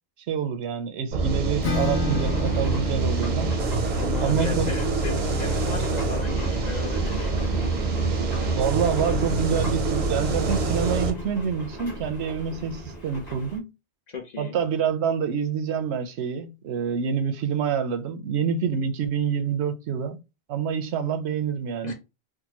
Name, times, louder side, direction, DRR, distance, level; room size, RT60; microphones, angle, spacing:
voice 1, 0.3-3.6 4.2-4.7 8.6-13.7 14.4-20.2 20.5-21.9, right 7 dB, 80° right, 0.8 m, -27 dB
sound 1, 1.1-11.1, right 3 dB, 50° right, 0.6 m, -26 dB
Acoustic guitar / Strum, 1.6-7.1, left 3 dB, 80° left, 0.9 m, -33 dB
sound 2, 2.1-13.6, right 1 dB, 20° left, 1.2 m, -38 dB
voice 2, 4.0-7.7 14.1-14.6 21.8-21.9, left 4 dB, 50° left, 0.6 m, -36 dB
3.7 x 2.2 x 2.8 m
omnidirectional pair, 1.1 m